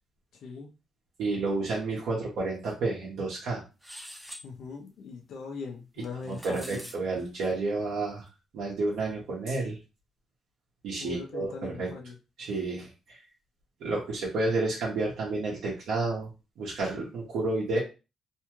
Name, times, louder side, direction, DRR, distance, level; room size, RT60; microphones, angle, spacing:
voice 1, 0.3-0.7 4.4-6.9 11.0-12.2, left 4 dB, 70° left, 1 dB, 0.7 m, -41 dB
voice 2, 1.2-3.6 6.3-8.2 8.5-9.8 10.8-11.9 12.4-13.2 13.8-16.3 16.6-17.8, right 3 dB, 75° right, -4 dB, 0.9 m, -30 dB
sound 1, 3.8-4.5 6.0-7.0, equal, 5° right, 0.6 m, -44 dB
2.7 x 2.3 x 3.0 m, 0.29 s
cardioid pair, 90°, 0 cm